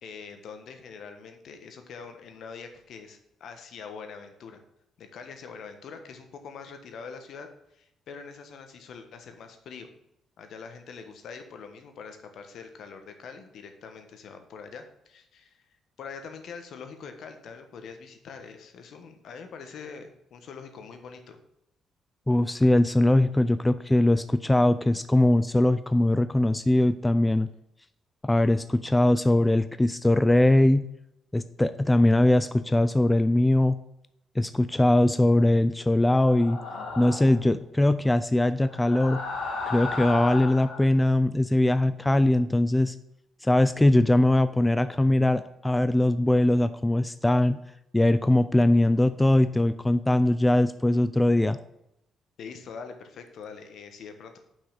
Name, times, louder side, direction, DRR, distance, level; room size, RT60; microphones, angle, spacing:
voice 1, 0.0-4.6 5.0-9.9 10.4-15.6 16.0-21.4 52.4-54.4, left 5 dB, 70° left, 7 dB, 1.2 m, -44 dB
voice 2, 22.3-27.5 28.2-30.8 31.3-33.8 34.4-36.6 37.0-39.2 39.7-42.9 43.4-47.6 47.9-51.6, left 1 dB, 10° left, 12 dB, 0.4 m, -21 dB
sound 1, 36.2-37.4 38.7-40.8, left 3 dB, 85° left, 2.0 m, -34 dB
5.8 x 5.5 x 6.6 m, 0.80 s
cardioid pair, 90°, 0 cm